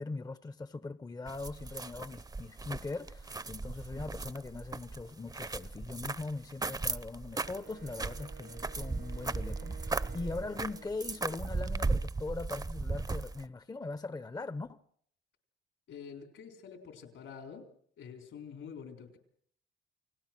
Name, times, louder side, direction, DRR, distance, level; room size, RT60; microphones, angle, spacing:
voice 1, 0.0-14.8, left 3 dB, 20° left, 0.8 m, -41 dB
sound 1, 1.3-13.4, right 3 dB, 20° right, 0.8 m, -37 dB
Wind instrument woodwind instrument, 7.3-11.4, right 7 dB, 80° right, 1.8 m, -54 dB
voice 2, 15.9-17.7 18.0-19.2, left 6 dB, 75° left, 4.2 m, -47 dB
29.5 x 19.0 x 6.1 m
cardioid pair, 90°, 20 cm